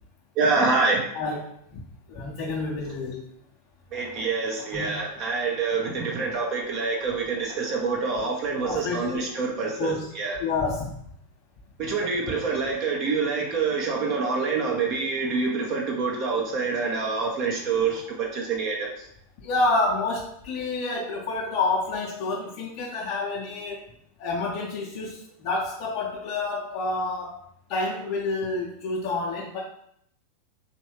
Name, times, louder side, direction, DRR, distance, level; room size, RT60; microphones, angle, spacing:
voice 1, 0.4-1.0 3.9-10.4 11.8-19.1, right 4 dB, 40° right, 0 dB, 0.8 m, -26 dB
voice 2, 1.1-1.8 2.1-3.2 4.2-4.3 4.7-5.0 8.6-9.2 9.8-10.1 10.4-11.0 19.4-23.8 24.2-27.4 27.7-29.6, left 3 dB, 45° left, -4 dB, 0.7 m, -28 dB
4.2 x 3.1 x 3.3 m, 0.70 s
figure-of-eight pair, 90°, 0 cm